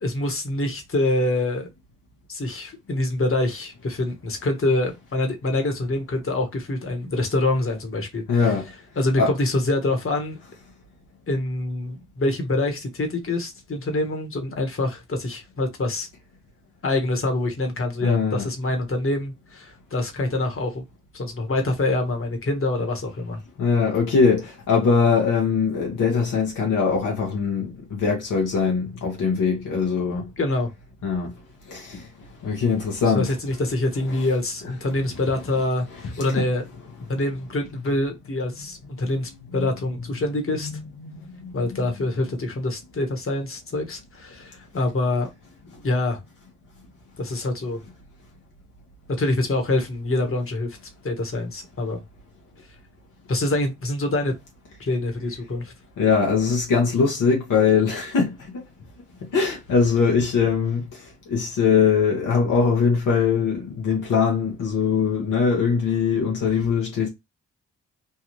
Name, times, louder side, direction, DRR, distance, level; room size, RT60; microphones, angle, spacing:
voice 1, 0.0-1.7 2.3-8.5 9.0-10.4 11.3-16.1 16.8-20.8 21.1-23.4 30.4-30.7 33.1-36.6 37.1-40.7 41.5-45.3 45.8-46.2 47.2-47.8 49.2-50.8 51.0-52.0 53.3-54.3 54.8-55.7, left 2 dB, 40° left, 1.3 m, -25 dB
voice 2, 8.3-8.7 9.2-9.3 18.0-18.5 23.6-30.3 31.0-31.3 31.7-32.1 32.4-33.3 35.3-35.4 36.0-36.5 39.5-39.7 40.6-41.5 41.8-41.9 56.0-58.6 59.3-67.1, left 5 dB, 75° left, 1.1 m, -22 dB
3.4 x 2.3 x 3.0 m
supercardioid pair, 40°, 32 cm